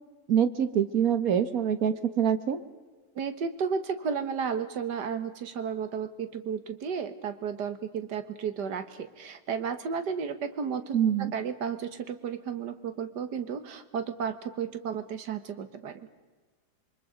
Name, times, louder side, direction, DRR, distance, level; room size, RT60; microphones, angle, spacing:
voice 1, 0.3-2.6 10.9-11.3, right 8 dB, 60° right, 10 dB, 1.6 m, -25 dB
voice 2, 3.2-16.1, right 6 dB, 75° right, 9 dB, 2.0 m, -33 dB
26.5 x 24.0 x 5.1 m, 1.3 s
omnidirectional pair, 1.8 m